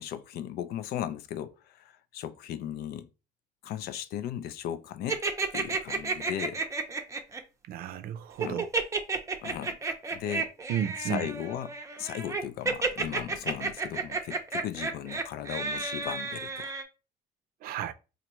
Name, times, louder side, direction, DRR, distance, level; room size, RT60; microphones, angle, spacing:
voice 1, 0.0-3.1 3.6-5.2 5.5-6.6 8.4-8.6 9.4-9.8 10.1-10.5 11.1-11.7 12.0-16.7, left 10 dB, 75° left, 0.5 m, -37 dB
sound 1, 5.1-7.4 8.4-16.8, right 3 dB, 20° right, 0.6 m, -31 dB
voice 2, 7.6-8.7 10.7-11.3 17.6-17.9, right 9 dB, 65° right, 0.5 m, -33 dB
4.3 x 2.5 x 3.0 m
cardioid pair, 125°, 16 cm